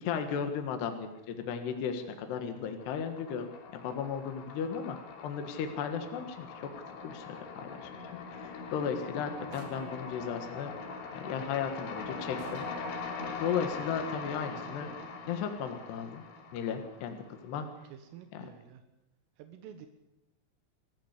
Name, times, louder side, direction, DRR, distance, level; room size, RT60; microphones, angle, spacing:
voice 1, 0.0-5.0 5.2-6.7 7.0-7.3 7.5-7.9 8.3-10.7 11.1-12.7 13.2-14.9 15.3-16.2 16.5-17.7 18.3-18.5, left 7 dB, 65° left, 7 dB, 3.3 m, -35 dB
sound 1, 1.3-2.0 2.3-17.5, left 4 dB, 85° left, 5.7 m, -42 dB
sound 2, 9.5-10.1 11.1-11.2 11.8-11.9 12.4-12.9, right 5 dB, 50° right, 3.1 m, -50 dB
voice 2, 17.5-18.8 19.4-19.9, right 9 dB, 85° right, 7 dB, 4.0 m, -50 dB
27.0 x 14.5 x 8.2 m, 0.91 s
omnidirectional pair, 5.7 m